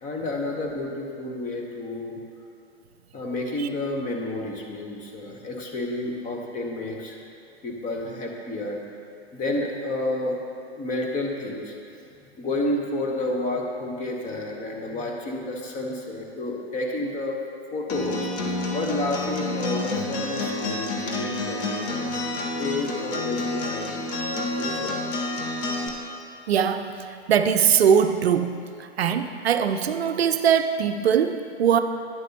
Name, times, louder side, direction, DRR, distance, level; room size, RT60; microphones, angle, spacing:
voice 1, 0.0-2.2 3.1-7.2 7.6-8.8 9.3-10.4 10.8-11.7 12.4-17.4 17.7-22.1 22.5-23.9 24.3-25.0, left 2 dB, 25° left, 1 dB, 1.1 m, -30 dB
Acoustic guitar, 17.9-25.9, left 2 dB, 40° left, 1.2 m, -29 dB
voice 2, 26.5-26.9 27.3-28.6 29.0-31.8, right 8 dB, 65° right, 8 dB, 0.6 m, -21 dB
11.0 x 9.9 x 2.9 m, 2.5 s
figure-of-eight pair, 110°, 33 cm